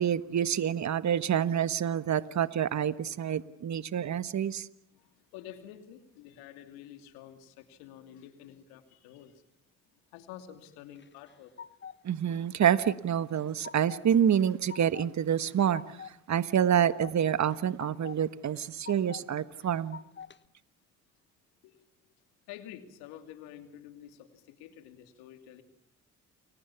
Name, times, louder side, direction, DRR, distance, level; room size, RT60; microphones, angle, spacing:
voice 1, 0.0-4.7 12.0-16.0 16.3-20.0, right 9 dB, 50° right, 14 dB, 1.4 m, -27 dB
voice 2, 4.9-9.4 10.1-11.5 21.6-21.9 22.5-25.6, left 11 dB, 85° left, 8 dB, 2.9 m, -49 dB
sound 1, 11.0-12.0 12.3-13.0 13.3-14.0 14.4-15.1 15.4-16.1 16.5-17.2 17.5-18.2 18.5-19.2 19.6-20.4, left 7 dB, 30° left, 1.3 m, -46 dB
30.0 x 22.5 x 7.2 m, 0.78 s
hypercardioid pair, 50°, 36 cm